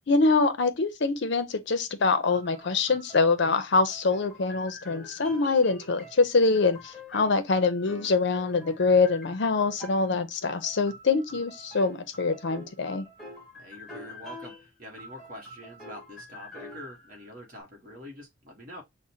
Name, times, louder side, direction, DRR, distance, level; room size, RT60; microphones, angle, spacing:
voice 1, 0.1-13.1, left 4 dB, 55° left, 0.6 m, -24 dB
sound 1, 2.3-10.2 10.4-14.7 15.0-17.6, left 1 dB, ahead, 1.1 m, -46 dB
voice 2, 13.6-18.8, left 1 dB, 40° right, 1.2 m, -45 dB
6.2 x 2.1 x 2.7 m
head